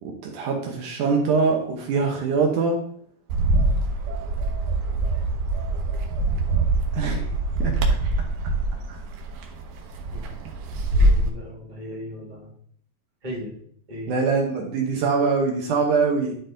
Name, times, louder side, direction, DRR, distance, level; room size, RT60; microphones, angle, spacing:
voice 1, 0.0-2.8 6.9-7.3 7.6-7.7 8.9-9.0 14.1-16.4, right 4 dB, 70° right, 1 dB, 2.4 m, -23 dB
Bird, 3.3-11.3, right 2 dB, 85° right, 2.7 m, -24 dB
voice 2, 10.9-12.5 13.2-13.5 13.9-14.1, equal, 15° right, -5 dB, 2.0 m, -36 dB
11.0 x 4.6 x 3.8 m, 0.63 s
omnidirectional pair, 3.9 m